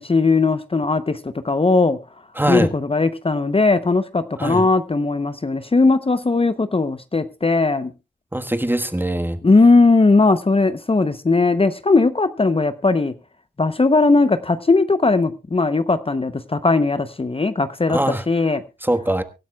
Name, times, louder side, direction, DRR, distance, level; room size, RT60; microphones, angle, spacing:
voice 1, 0.0-2.0 2.5-7.9 9.4-13.1 13.6-18.0 18.3-18.6, left 3 dB, 35° left, 0.7 m, -18 dB
voice 2, 2.4-2.7 4.4-4.7 8.3-9.4 17.9-18.2 18.8-19.2, right 1 dB, 10° right, 1.4 m, -22 dB
24.0 x 12.0 x 2.3 m
wide cardioid pair, 70°, 17 cm